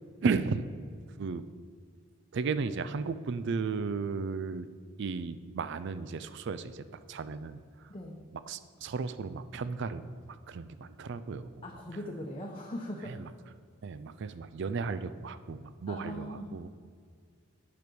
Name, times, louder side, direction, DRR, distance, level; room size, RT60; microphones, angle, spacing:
voice 1, 0.2-0.7 1.2-1.4 2.3-4.7 5.0-6.8 7.1-7.6 8.5-10.0 10.5-11.6 13.1-13.3 13.8-16.7, right 4 dB, 60° right, 13 dB, 0.4 m, -34 dB
voice 2, 7.9-8.2 11.6-13.2 15.9-16.6, equal, 30° left, -1 dB, 0.8 m, -40 dB
9.6 x 5.1 x 6.2 m, 2.1 s
head